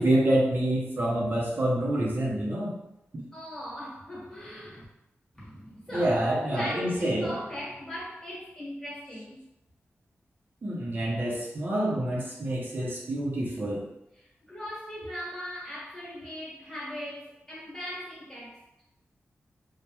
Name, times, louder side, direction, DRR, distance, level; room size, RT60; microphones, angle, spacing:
voice 1, 0.0-2.7 5.9-7.3 10.6-13.9, right 1 dB, 45° right, -3 dB, 0.5 m, -27 dB
voice 2, 3.3-4.8 5.3-9.5 14.1-18.6, equal, 15° left, -7 dB, 1.1 m, -39 dB
3.2 x 2.1 x 2.8 m, 0.85 s
wide cardioid pair, 135°, 5 cm